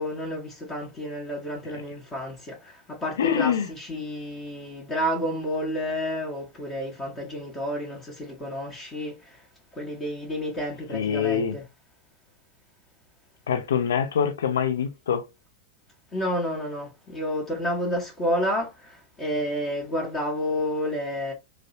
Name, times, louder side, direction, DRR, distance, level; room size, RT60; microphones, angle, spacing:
voice 1, 0.0-9.5 9.7-11.7 16.1-21.3, equal, 25° left, 1.0 m, -30 dB
voice 2, 3.2-3.7 10.9-11.6 13.5-15.2, left 8 dB, 65° left, 0.5 m, -24 dB
2.7 x 2.0 x 2.5 m
figure-of-eight pair, 90°, 0 cm